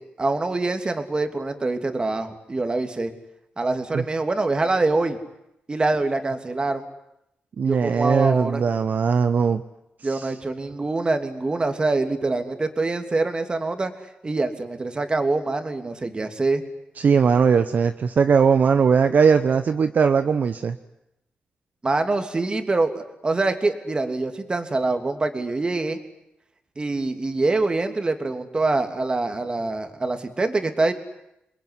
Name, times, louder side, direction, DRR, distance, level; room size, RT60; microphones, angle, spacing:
voice 1, 0.0-3.1 3.6-5.2 5.7-6.8 7.6-8.6 10.0-13.9 14.2-16.6 21.8-26.0 26.8-30.9, right 3 dB, 30° right, 7 dB, 2.9 m, -25 dB
voice 2, 7.6-9.6 10.0-10.3 17.0-20.8, right 6 dB, 55° right, 9 dB, 1.0 m, -19 dB
28.0 x 21.5 x 9.8 m, 0.83 s
cardioid pair, 105°, 3 cm